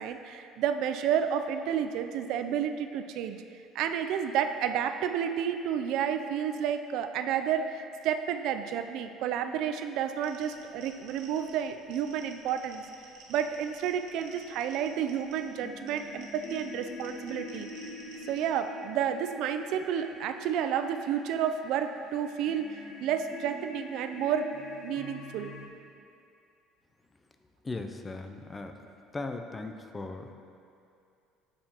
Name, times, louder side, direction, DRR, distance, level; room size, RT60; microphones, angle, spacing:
voice 1, 0.0-3.4 3.7-12.8 13.3-17.7 18.2-24.5 24.8-25.5, right 8 dB, 60° right, 8 dB, 0.4 m, -31 dB
sound 1, 10.2-18.5, right 3 dB, 85° right, 1.5 m, -54 dB
sound 2, 15.2-25.7, left 2 dB, 50° left, 0.7 m, -45 dB
voice 2, 27.6-28.8 29.1-30.3, left 3 dB, 15° left, 6 dB, 0.4 m, -38 dB
8.4 x 7.8 x 2.9 m, 2.5 s
cardioid pair, 145°, 0 cm